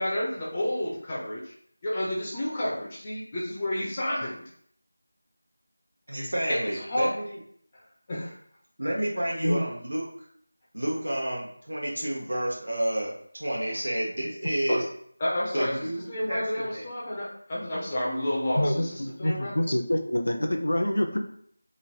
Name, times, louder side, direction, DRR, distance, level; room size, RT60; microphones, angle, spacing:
voice 1, 0.0-1.5 1.8-4.4 6.5-7.1 8.1-8.3 14.7-14.8 15.2-19.7, left 1 dB, 15° left, -7 dB, 0.3 m, -30 dB
voice 2, 6.1-7.4 8.8-10.1 10.7-14.8 15.5-16.9, right 1 dB, 85° right, -2 dB, 0.8 m, -30 dB
voice 3, 18.6-21.2, left 1 dB, 75° left, 4 dB, 0.5 m, -26 dB
3.0 x 2.4 x 2.7 m, 0.63 s
figure-of-eight pair, 180°, 0 cm